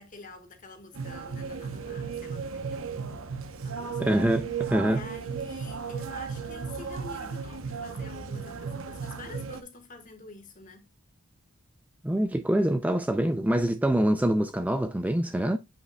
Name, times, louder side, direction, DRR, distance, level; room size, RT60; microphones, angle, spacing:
voice 1, 0.0-3.2 3.6-4.1 4.9-10.9, left 3 dB, 35° left, 1.6 m, -47 dB
sound 1, 0.9-9.6, right 5 dB, 65° right, 0.9 m, -35 dB
voice 2, 4.0-5.0 12.0-15.6, right 1 dB, 5° right, 0.3 m, -25 dB
8.3 x 5.4 x 2.2 m
head